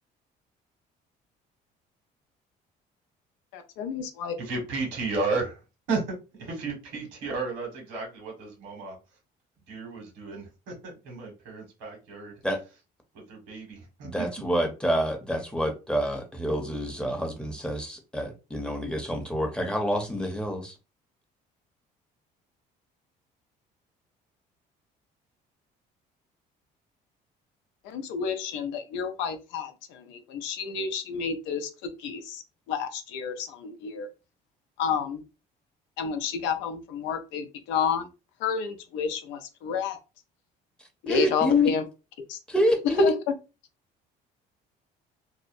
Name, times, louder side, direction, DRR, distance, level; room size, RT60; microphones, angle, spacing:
voice 1, 3.5-4.3 27.8-31.7 32.0-32.4 32.7-34.1 34.8-35.2 36.0-38.1 38.4-40.0 41.0-41.8 42.3-42.4 43.0-43.1, left 6 dB, 80° left, 8 dB, 0.5 m, -30 dB
voice 2, 4.4-5.5 5.9-8.9 9.7-12.3 13.3-14.3, right 3 dB, 85° right, 1 dB, 1.4 m, -33 dB
voice 3, 14.0-20.7 41.1-41.7 42.5-43.1, left 1 dB, 5° left, 3 dB, 0.7 m, -27 dB
2.7 x 2.0 x 2.5 m, 0.29 s
supercardioid pair, 80°, 19 cm